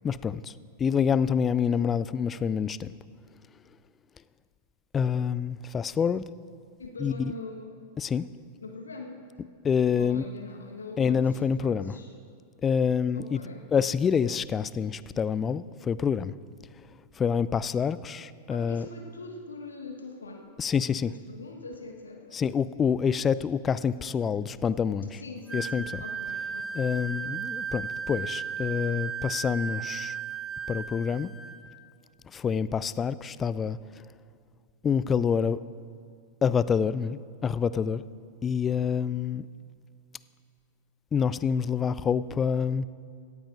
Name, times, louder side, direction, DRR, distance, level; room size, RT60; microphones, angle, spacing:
voice 1, 0.0-0.5 0.8-2.9 4.9-6.2 7.0-7.3 8.0-8.3 9.6-10.3 11.0-12.0 12.6-13.4 13.7-16.3 17.2-18.9 20.6-21.1 22.3-25.2 25.5-26.0 26.7-30.2 30.7-31.3 32.3-33.8 34.8-35.6 36.4-38.0 38.4-39.5 41.1-42.9, left 7 dB, 20° left, 17 dB, 0.3 m, -27 dB
voice 2, 6.8-7.8 8.6-9.2 10.0-12.1 13.1-13.6 18.5-20.5 21.1-22.4 25.2-26.9, left 3 dB, 75° left, 3 dB, 1.2 m, -42 dB
Wind instrument woodwind instrument, 25.5-31.6, right 6 dB, 15° right, 1.0 m, -35 dB
17.5 x 14.5 x 2.6 m, 2.2 s
figure-of-eight pair, 95°, 0 cm